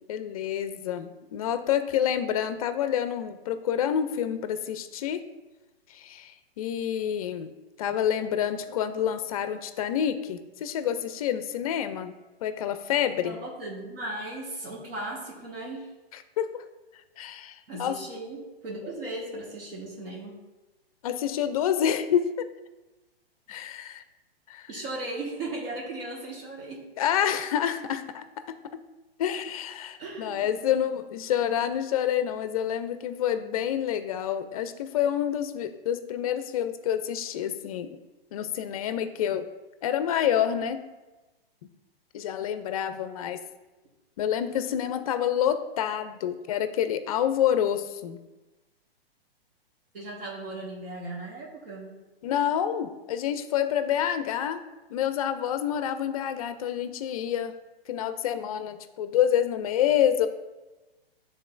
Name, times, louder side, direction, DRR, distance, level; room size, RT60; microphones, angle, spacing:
voice 1, 0.1-5.2 5.9-7.5 7.8-12.1 12.4-13.4 16.4-16.6 17.2-18.0 21.0-22.3 23.5-24.0 24.5-24.7 27.0-28.2 29.2-37.9 38.3-39.5 39.8-40.8 42.1-43.4 44.2-48.2 52.2-54.6 54.9-57.5 57.9-60.3, left 9 dB, 40° left, 10 dB, 0.4 m, -28 dB
voice 2, 13.2-15.9 17.7-20.4 24.7-26.9 30.0-30.7 49.9-51.9, right 2 dB, 65° right, -3 dB, 1.6 m, -37 dB
10.0 x 3.8 x 2.5 m, 1.1 s
hypercardioid pair, 140°, 30 cm